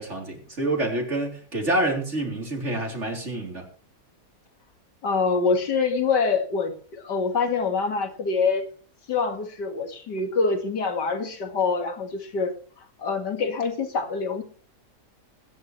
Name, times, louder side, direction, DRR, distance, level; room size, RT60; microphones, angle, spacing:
voice 1, 0.0-3.6, right 1 dB, 45° right, 1 dB, 3.9 m, -27 dB
voice 2, 5.0-8.6 9.1-12.5 13.0-14.4, left 4 dB, 90° left, 5 dB, 2.6 m, -25 dB
21.5 x 10.5 x 3.2 m, 0.42 s
omnidirectional pair, 1.8 m